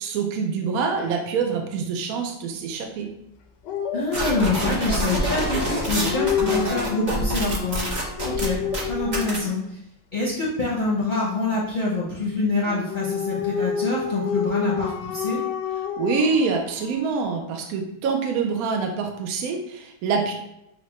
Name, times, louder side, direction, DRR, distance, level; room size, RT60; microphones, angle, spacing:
voice 1, 0.0-3.1 16.0-20.3, right 5 dB, 70° right, 2 dB, 0.9 m, -25 dB
Dog, 3.6-9.5 12.6-17.2, left 7 dB, 75° left, 1.1 m, -29 dB
voice 2, 3.9-7.8 8.2-8.6 8.8-9.6 10.1-15.4, left 3 dB, 40° left, -6 dB, 0.8 m, -25 dB
sound 1, 4.1-9.4, right 1 dB, 45° right, 0.5 m, -27 dB
6.5 x 2.2 x 3.0 m, 0.85 s
omnidirectional pair, 2.0 m